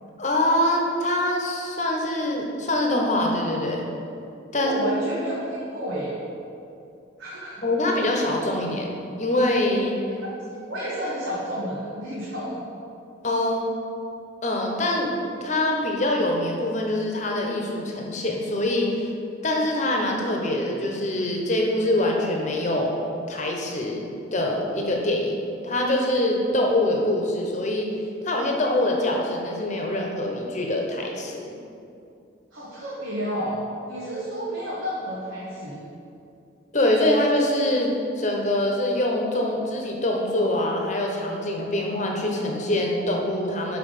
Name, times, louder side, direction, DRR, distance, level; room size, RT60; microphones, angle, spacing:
voice 1, 0.2-3.8 4.5-4.8 7.6-10.0 13.2-13.7 14.4-15.1 15.4-19.1 19.4-22.9 23.3-24.0 24.3-25.3 25.6-27.9 28.2-31.5 36.7-43.8, left 1 dB, 35° left, 0 dB, 1.1 m, -24 dB
voice 2, 4.5-6.2 7.2-7.6 10.1-12.6 32.5-33.6 33.9-35.8, equal, 85° right, -8 dB, 1.6 m, -31 dB
5.9 x 5.8 x 6.6 m, 2.6 s
head